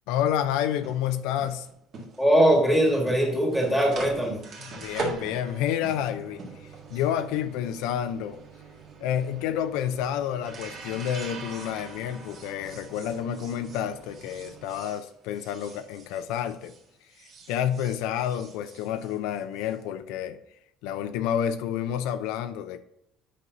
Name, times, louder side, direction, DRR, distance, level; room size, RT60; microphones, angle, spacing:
voice 1, 0.1-1.7 4.7-8.4 9.0-16.7 17.2-20.4 20.8-22.8, left 10 dB, 75° left, 9 dB, 0.5 m, -29 dB
sound 1, 0.6-16.8 17.1-19.7, right 3 dB, 35° right, 1.6 m, -42 dB
voice 2, 2.2-4.4, right 1 dB, ahead, 0 dB, 1.6 m, -21 dB
8.4 x 5.4 x 2.6 m, 0.77 s
cardioid pair, 180°, 0 cm